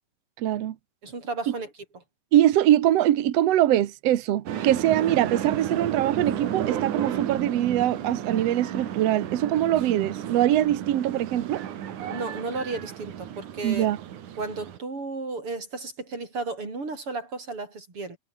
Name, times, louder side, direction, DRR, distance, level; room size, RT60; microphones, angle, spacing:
voice 1, 0.4-0.7 1.5-1.6 2.3-11.6 13.6-14.0, right 12 dB, 85° right, 1.4 m, -23 dB
voice 2, 1.0-1.7 12.1-13.9 14.4-18.2, right 3 dB, 30° right, 6.9 m, -33 dB
sound 1, 4.5-14.8, right 10 dB, 55° right, 2.9 m, -33 dB
omnidirectional pair, 4.6 m